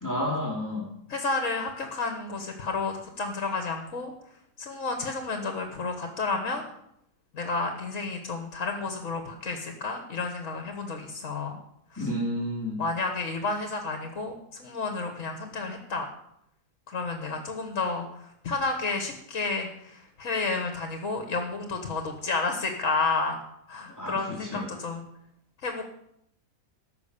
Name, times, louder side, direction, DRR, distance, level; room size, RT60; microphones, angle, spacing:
voice 1, 0.0-0.9 12.0-12.8 23.9-24.7, left 1 dB, 10° left, -3 dB, 2.4 m, -31 dB
voice 2, 1.1-4.1 4.6-6.6 7.3-11.6 11.9-12.1 12.8-16.1 16.9-18.1 18.4-23.4 23.7-25.1 25.6-25.8, left 3 dB, 60° left, 5 dB, 1.6 m, -31 dB
14.0 x 5.9 x 6.7 m, 0.76 s
omnidirectional pair, 1.5 m